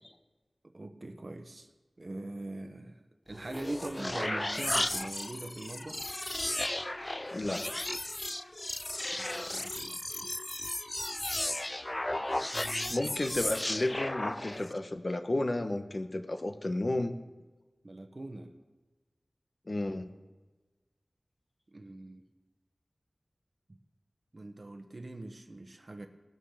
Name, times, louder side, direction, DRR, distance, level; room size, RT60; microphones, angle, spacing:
voice 1, 0.6-1.7 2.0-6.0 9.1-10.2 12.5-13.2 17.8-18.5 21.7-22.2 23.7-23.8 24.3-26.1, right 2 dB, 50° right, 6 dB, 1.1 m, -42 dB
sound 1, 3.3-14.8, left 1 dB, 25° left, 0.4 m, -35 dB
voice 2, 7.3-7.6 12.9-17.1 19.7-20.1, left 1 dB, 50° left, 7 dB, 1.1 m, -32 dB
19.0 x 6.7 x 6.5 m, 1.2 s
wide cardioid pair, 70°, 0 cm